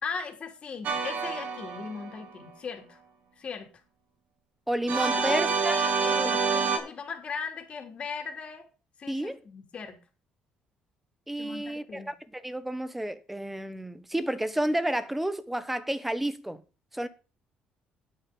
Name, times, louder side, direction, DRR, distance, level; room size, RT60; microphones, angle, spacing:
voice 1, 0.0-3.0 3.4-3.7 5.3-8.6 9.0-10.0 11.4-12.1, left 5 dB, 40° left, 3.2 m, -38 dB
sound 1, 0.8-2.4 4.9-6.8, right 5 dB, 60° right, 2.7 m, -27 dB
voice 2, 4.7-5.7 6.2-6.4 9.1-9.4 11.3-16.6 16.9-17.1, right 1 dB, 5° right, 1.0 m, -31 dB
9.4 x 9.1 x 5.3 m
cardioid pair, 115°, 3 cm